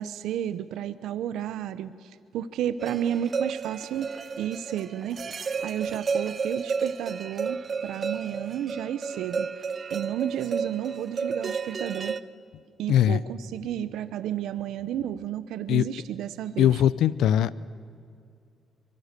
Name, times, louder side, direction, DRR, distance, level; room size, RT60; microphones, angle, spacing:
voice 1, 0.0-4.1 4.4-9.5 9.9-12.2 12.8-16.8, right 10 dB, 85° right, 13 dB, 0.8 m, -32 dB
sound 1, 2.8-12.2, right 5 dB, 40° right, 0.8 m, -32 dB
voice 2, 12.9-13.2 15.7-15.8 16.6-17.5, left 10 dB, 85° left, 18 dB, 0.6 m, -20 dB
24.0 x 23.0 x 6.7 m, 2.3 s
cardioid pair, 90°, 0 cm